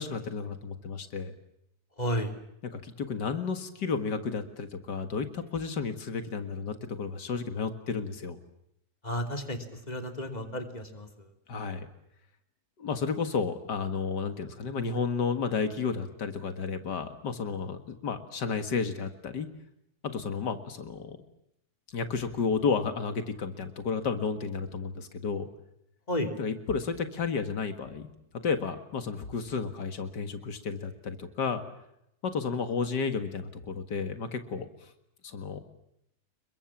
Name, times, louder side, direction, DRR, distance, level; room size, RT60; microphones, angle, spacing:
voice 1, 0.0-1.3 2.7-8.4 11.5-11.9 12.8-19.5 20.0-21.2 21.9-25.5 26.4-28.1 28.4-31.6 32.2-34.9 35.2-35.6, left 5 dB, 90° left, 8 dB, 2.4 m, -32 dB
voice 2, 2.0-2.4 9.0-11.3 26.1-26.3, equal, 25° left, 5 dB, 3.2 m, -32 dB
29.0 x 22.5 x 7.3 m, 0.78 s
omnidirectional pair, 1.8 m